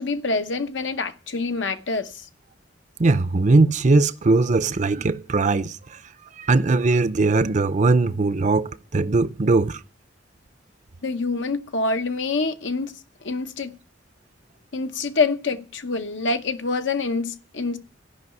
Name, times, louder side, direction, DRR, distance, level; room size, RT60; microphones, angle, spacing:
voice 1, 0.0-2.3 11.0-12.9 13.2-13.8 14.7-17.8, left 3 dB, 75° left, 1.0 m, -26 dB
voice 2, 3.0-6.0 6.4-9.8, right 3 dB, 40° right, 0.6 m, -20 dB
14.5 x 5.6 x 9.6 m
head